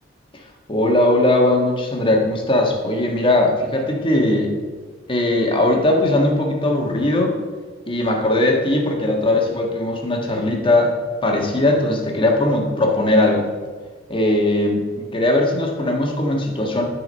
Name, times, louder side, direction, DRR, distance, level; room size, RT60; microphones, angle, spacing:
voice 1, 0.7-4.5 5.1-7.4 7.9-10.9 11.2-13.5 14.1-16.8, left 1 dB, 25° left, 1 dB, 1.5 m, -19 dB
11.0 x 4.7 x 5.5 m, 1.5 s
head